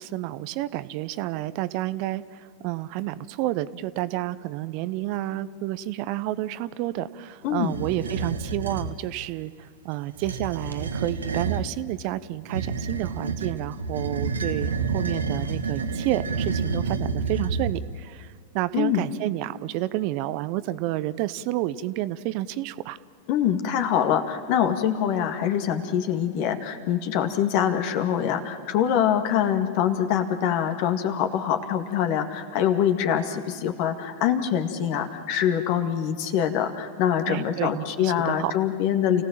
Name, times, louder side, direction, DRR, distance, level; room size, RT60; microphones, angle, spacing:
voice 1, 0.0-23.0 37.3-38.5, right 15 dB, 50° right, 16 dB, 0.7 m, -30 dB
sound 1, 7.7-8.9 10.1-11.7 12.5-18.0, right 4 dB, 80° right, 1.5 m, -29 dB
voice 2, 23.3-39.2, left 9 dB, 50° left, 7 dB, 2.2 m, -24 dB
29.0 x 17.0 x 7.5 m, 2.2 s
figure-of-eight pair, 90°, 0 cm